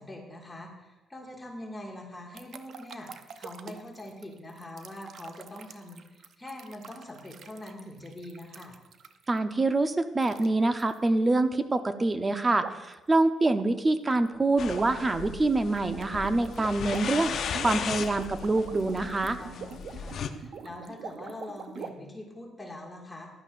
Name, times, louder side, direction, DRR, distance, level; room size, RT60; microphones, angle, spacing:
voice 1, 0.0-8.7 19.4-23.3, left 1 dB, 20° left, -1 dB, 2.0 m, -43 dB
sound 1, 2.3-9.4 10.2-10.5 10.8-11.0 12.6-12.9 13.3-21.9, right 6 dB, 65° right, 0.7 m, -44 dB
voice 2, 9.3-19.4, right 2 dB, 25° right, 9 dB, 0.7 m, -26 dB
sound 2, 14.6-20.3, left 7 dB, 65° left, 0.6 m, -36 dB
15.5 x 11.0 x 2.5 m, 1.1 s
cardioid pair, 90°, 0 cm